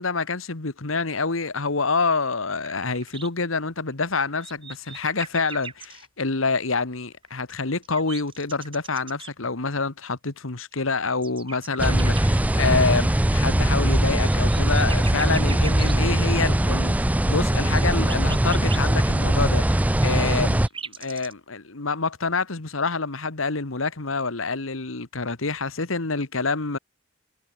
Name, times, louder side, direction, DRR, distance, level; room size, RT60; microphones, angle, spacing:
voice 1, 0.0-20.6 21.0-26.8, left 4 dB, 85° left, 1.7 m, -27 dB
sound 1, 2.6-3.3 4.1-6.1 7.3-9.3 10.7-12.4 14.0-15.9 17.6-18.9 20.0-21.3, right 5 dB, 25° right, 4.9 m, -39 dB
sound 2, 11.8-20.7, right 1 dB, 5° right, 0.4 m, -21 dB
head